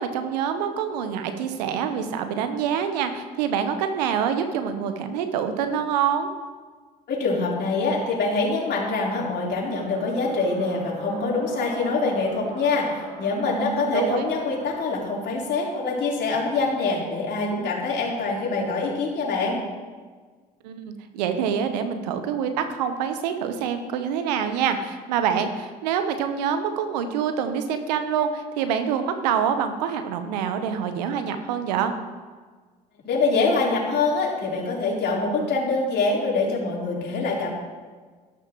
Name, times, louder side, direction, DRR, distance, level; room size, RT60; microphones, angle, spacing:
voice 1, 0.0-6.3 13.8-14.2 20.6-31.9, right 7 dB, 80° right, 8 dB, 1.0 m, -26 dB
voice 2, 7.1-19.6 33.0-37.5, left 3 dB, 55° left, -4 dB, 3.9 m, -25 dB
sound 1, 9.6-14.9, right 1 dB, 45° right, 2.8 m, -38 dB
12.5 x 12.0 x 3.1 m, 1.4 s
hypercardioid pair, 60°, 21 cm